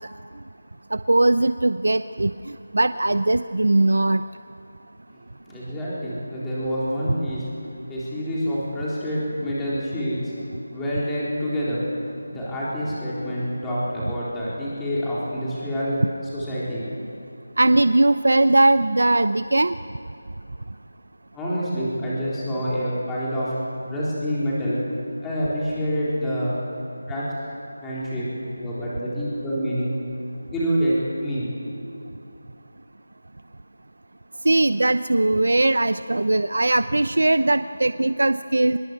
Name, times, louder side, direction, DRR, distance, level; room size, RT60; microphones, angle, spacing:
voice 1, 0.9-2.3 2.7-4.2 17.6-19.7 34.4-38.8, right 2 dB, 85° right, 12 dB, 0.7 m, -19 dB
voice 2, 5.5-7.4 7.9-10.3 10.7-11.8 12.3-16.0 16.3-16.9 21.3-23.5 23.9-24.8 25.2-26.6 27.1-27.3 27.8-28.3 28.6-30.0 30.5-31.5, equal, 5° left, -8 dB, 4.0 m, -27 dB
26.5 x 22.5 x 8.1 m, 2.7 s
figure-of-eight pair, 175°, 0 cm